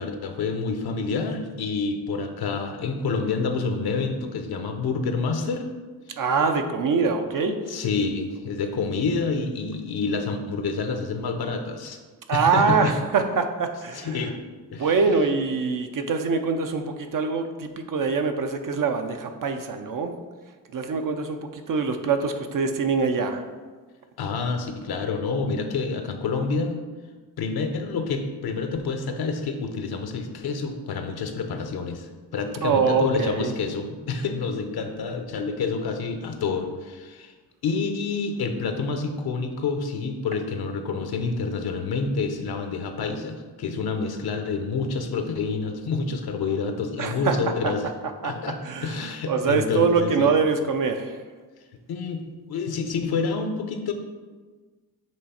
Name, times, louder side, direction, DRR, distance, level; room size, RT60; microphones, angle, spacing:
voice 1, 0.0-5.7 7.7-12.0 12.3-12.9 13.9-14.4 14.7-15.0 24.2-26.8 27.4-37.3 37.6-47.9 48.2-50.3 51.9-52.2 52.5-53.9, left 4 dB, 65° left, 6 dB, 0.9 m, -28 dB
voice 2, 6.2-7.7 12.3-14.3 14.8-20.1 20.7-23.5 32.6-33.5 47.0-47.7 48.2-48.3 48.6-51.2, right 5 dB, 55° right, 6 dB, 0.7 m, -24 dB
7.4 x 3.1 x 4.3 m, 1.4 s
cardioid pair, 70°, 40 cm